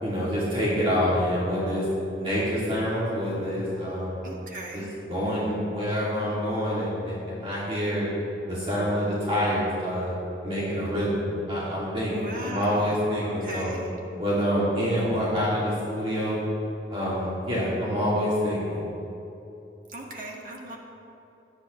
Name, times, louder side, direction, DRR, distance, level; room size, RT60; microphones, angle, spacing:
voice 1, 0.0-1.8 2.2-4.2 4.7-4.8 5.1-8.1 8.5-10.1 10.4-13.7 14.2-16.4 16.9-18.8, equal, 30° right, -8 dB, 2.7 m, -26 dB
voice 2, 4.2-5.0 12.1-13.9 19.9-20.8, right 1 dB, 50° right, -2 dB, 2.0 m, -38 dB
18.0 x 12.0 x 3.3 m, 3.0 s
head